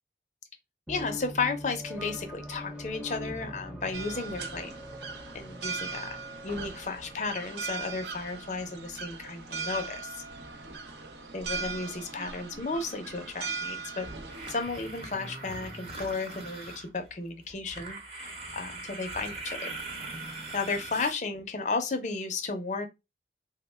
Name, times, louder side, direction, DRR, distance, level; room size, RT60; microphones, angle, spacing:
voice 1, 0.9-4.7 5.3-10.2 11.3-14.1 14.5-19.8 20.5-22.9, left 4 dB, 40° left, 0.5 m, -34 dB
sound 1, 0.9-8.2, equal, 5° right, 0.5 m, -43 dB
sound 2, 3.9-14.6, right 5 dB, 80° right, 0.6 m, -39 dB
sound 3, 13.9-17.1 17.5-21.1, right 2 dB, 35° right, 0.8 m, -41 dB
3.3 x 2.1 x 3.2 m
head